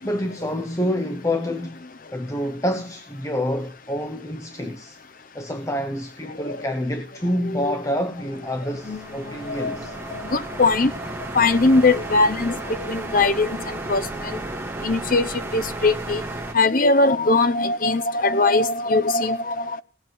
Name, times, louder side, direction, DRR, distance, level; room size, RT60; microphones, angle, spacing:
voice 1, 0.0-1.8 2.1-5.0 5.3-10.0, left 1 dB, 15° left, 1.1 m, -27 dB
voice 2, 6.4-6.7 7.4-7.8 8.8-10.9 11.3-14.4 14.8-16.2 16.5-19.8, left 3 dB, 45° left, 0.9 m, -21 dB
sound 1, 8.2-16.5, right 2 dB, 10° right, 1.9 m, -33 dB
18.0 x 7.4 x 9.5 m
head